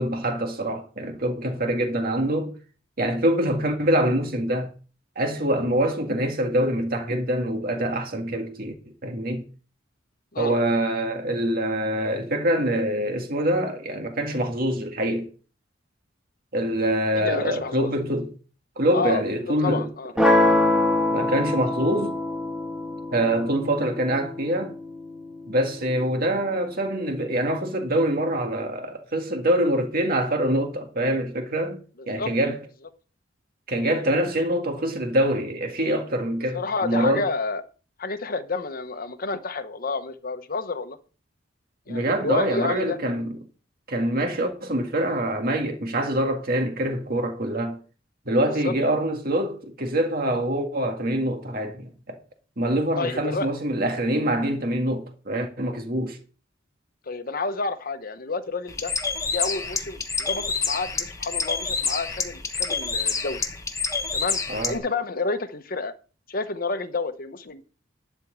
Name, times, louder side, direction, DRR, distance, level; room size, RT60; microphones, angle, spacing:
voice 1, 0.0-2.5 3.0-4.7 5.2-8.7 9.0-9.5 10.4-15.3 16.5-18.3 18.8-19.9 21.1-22.2 23.1-24.8 25.5-31.8 32.1-32.6 33.7-37.3 41.9-43.4 43.9-47.8 48.3-52.2 52.6-56.2 64.5-64.8, right 1 dB, 50° right, 1.8 m, -25 dB
voice 2, 17.1-17.9 18.9-20.1 32.0-32.3 36.5-37.6 38.0-41.0 41.9-43.0 48.5-48.7 53.0-53.5 57.1-58.9 59.3-63.4 64.1-64.4 64.7-65.9 66.3-67.6, left 3 dB, 50° left, 1.0 m, -30 dB
sound 1, 20.2-26.2, left 1 dB, 5° right, 1.5 m, -24 dB
Bird, 58.7-64.8, left 5 dB, 15° left, 1.1 m, -28 dB
12.0 x 4.5 x 7.4 m
head